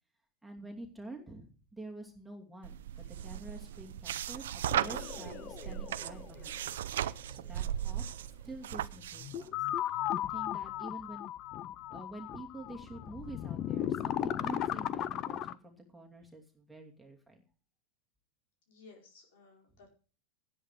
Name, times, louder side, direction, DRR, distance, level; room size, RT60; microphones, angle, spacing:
voice 1, 0.4-8.0 8.4-9.6 10.3-11.3 11.9-17.4, right 2 dB, ahead, -1 dB, 2.6 m, -48 dB
sound 1, 2.6-9.4, right 11 dB, 80° right, 0.6 m, -37 dB
voice 2, 3.0-3.4 18.7-19.9, left 4 dB, 70° left, 2 dB, 4.7 m, -58 dB
sound 2, 4.7-7.3 7.7-7.8 8.9-9.0 9.2-15.6, left 11 dB, 35° left, 0.6 m, -36 dB
11.5 x 10.0 x 4.9 m, 0.39 s
hypercardioid pair, 125°, 0 cm